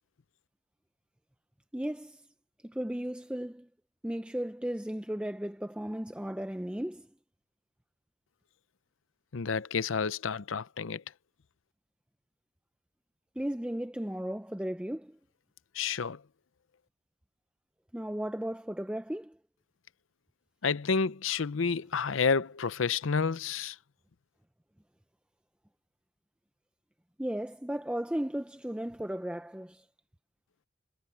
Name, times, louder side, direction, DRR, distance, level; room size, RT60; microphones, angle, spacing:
voice 1, 1.7-2.3 2.6-3.7 4.0-7.1 13.4-15.2 17.9-19.4 27.2-29.8, right 1 dB, 5° right, 0.4 m, -35 dB
voice 2, 9.3-11.0 15.8-16.2 20.6-23.8, left 5 dB, 85° left, 0.7 m, -30 dB
head